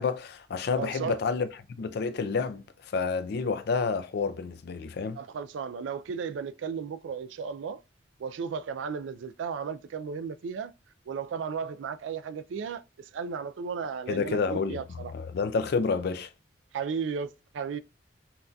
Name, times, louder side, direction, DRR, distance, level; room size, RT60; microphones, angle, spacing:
voice 1, 0.0-1.5 1.8-2.6 2.9-5.2 14.1-14.8 15.1-16.3, left 5 dB, 60° left, 0.4 m, -29 dB
voice 2, 0.8-1.2 5.2-7.8 8.2-10.7 11.1-15.1 16.7-17.8, right 6 dB, 80° right, 0.3 m, -35 dB
5.7 x 2.6 x 2.3 m
head